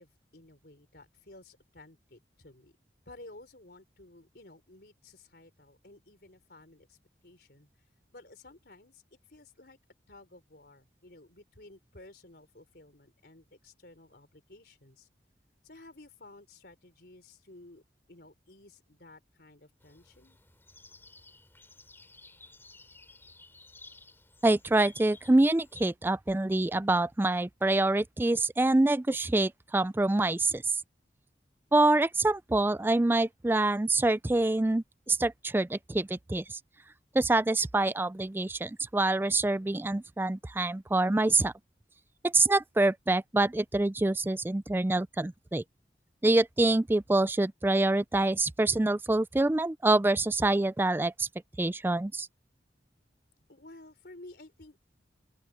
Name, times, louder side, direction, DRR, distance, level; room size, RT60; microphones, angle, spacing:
voice 1, 0.0-2.7 3.1-7.0 7.2-7.7 8.1-9.8 10.1-15.1 15.6-17.8 18.1-20.4 53.5-54.8, left 2 dB, 60° left, 4.3 m, -53 dB
sound 1, 19.8-25.9, left 3 dB, 15° left, 3.9 m, -54 dB
voice 2, 24.4-30.6 31.7-36.6 37.1-41.5 42.2-45.6 46.2-51.3 51.6-52.3, right 2 dB, 10° right, 0.3 m, -26 dB
open air
head